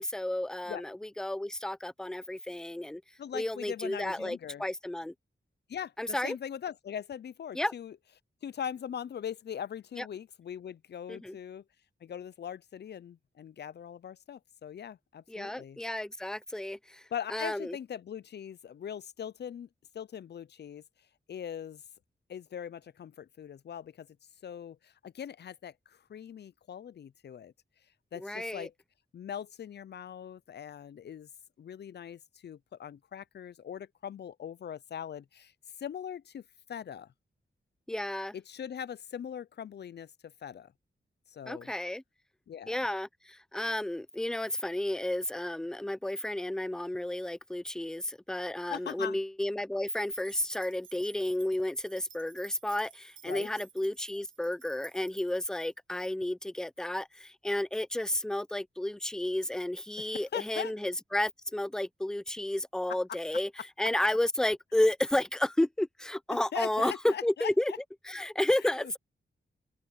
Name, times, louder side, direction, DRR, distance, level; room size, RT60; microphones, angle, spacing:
voice 1, 0.0-3.0 3.3-5.1 6.0-6.4 7.5-7.7 10.0-10.1 11.1-11.4 15.3-17.8 28.2-28.7 37.9-38.4 41.5-42.0 42.7-63.5 63.8-67.7 68.0-69.0, left 1 dB, 5° left, 0.6 m, -32 dB
voice 2, 3.2-4.6 5.7-8.0 8.4-11.6 12.0-15.8 17.1-19.7 19.9-20.8 21.3-21.8 22.3-24.1 24.4-27.5 28.1-28.7 29.1-31.3 31.6-35.5 35.8-37.1 38.3-40.7 41.3-41.7 42.5-42.8 48.7-49.2 53.3-53.5 60.3-60.7 62.9-63.0 66.3-67.8 68.8-68.9, left 8 dB, 60° left, 0.4 m, -41 dB
sound 1, 49.9-55.7, right 6 dB, 85° right, 1.3 m, -54 dB
open air
wide cardioid pair, 145°, 20 cm